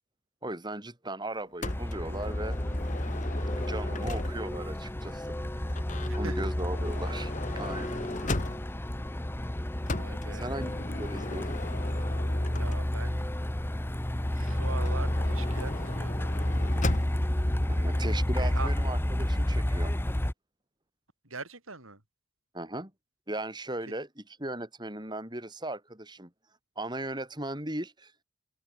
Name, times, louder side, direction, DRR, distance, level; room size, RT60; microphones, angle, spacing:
voice 1, 0.4-2.6 3.6-5.3 6.1-8.1 10.3-11.6 17.8-19.9 22.5-22.9 23.3-26.3 26.8-28.1, right 1 dB, 20° right, 4.6 m, -37 dB
Motor vehicle (road) / Sliding door, 1.6-4.7 5.7-8.9 9.9-13.2 14.4-17.4, left 2 dB, 35° left, 1.2 m, -38 dB
Truck, 1.6-20.3, left 1 dB, 10° left, 0.7 m, -30 dB
voice 2, 6.0-6.4 9.9-10.5 12.6-13.2 14.3-16.4 17.7-18.7 21.2-22.0 23.9-24.0, right 3 dB, 80° right, 7.2 m, -42 dB
open air
head